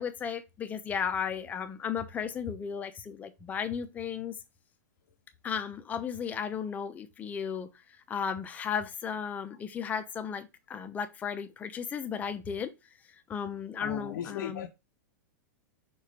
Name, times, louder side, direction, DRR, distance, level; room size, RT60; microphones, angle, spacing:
voice 1, 0.0-4.4 5.4-7.7 8.1-12.7 13.3-14.7, left 7 dB, 15° left, 0.8 m, -35 dB
voice 2, 13.8-14.7, left 9 dB, 85° left, 0.9 m, -37 dB
6.2 x 4.3 x 4.8 m
supercardioid pair, 160°, 10 cm